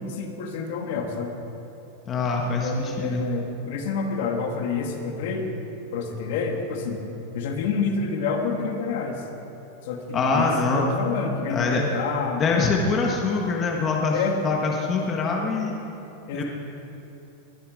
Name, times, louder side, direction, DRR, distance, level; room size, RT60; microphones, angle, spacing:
voice 1, 0.0-1.3 2.4-5.5 5.9-7.0 7.3-9.2 9.9-12.7 14.1-14.4 16.3-16.4, left 5 dB, 60° left, 3 dB, 2.1 m, -28 dB
voice 2, 2.1-3.2 10.1-10.9 11.5-11.9 12.4-15.7 16.3-16.4, left 3 dB, 20° left, 0 dB, 1.5 m, -24 dB
21.0 x 12.5 x 5.3 m, 2.9 s
supercardioid pair, 160°, 0 cm